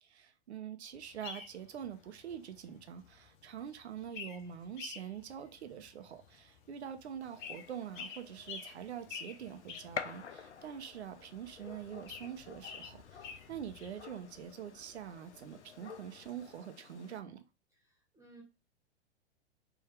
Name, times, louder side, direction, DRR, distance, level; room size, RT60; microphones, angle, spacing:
voice 1, 0.0-17.4, right 9 dB, 70° right, 0.8 m, -45 dB
sound 1, 0.9-16.5, left 6 dB, 45° left, 1.0 m, -51 dB
Gunshot gunfire, 7.2-17.2, left 6 dB, 80° left, 0.6 m, -49 dB
voice 2, 17.7-18.4, right 2 dB, 10° right, 1.4 m, -59 dB
4.6 x 2.7 x 3.5 m
figure-of-eight pair, 105°, 34 cm